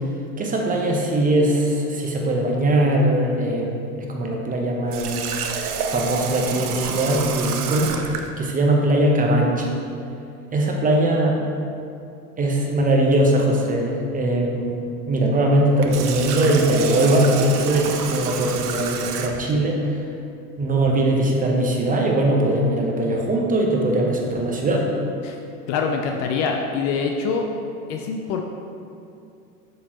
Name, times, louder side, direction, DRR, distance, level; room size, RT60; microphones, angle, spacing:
voice 1, 0.4-5.4 5.9-7.9 8.4-9.7 10.5-11.4 12.4-20.0 20.6-24.9, right 1 dB, 20° right, 0 dB, 0.9 m, -20 dB
Water tap faucet, 4.9-8.3 15.7-19.5, right 6 dB, 75° right, 0.7 m, -29 dB
voice 2, 25.7-27.5 27.9-28.4, left 5 dB, 40° left, 3 dB, 0.6 m, -24 dB
7.2 x 6.4 x 3.0 m, 2.5 s
figure-of-eight pair, 85°, 46 cm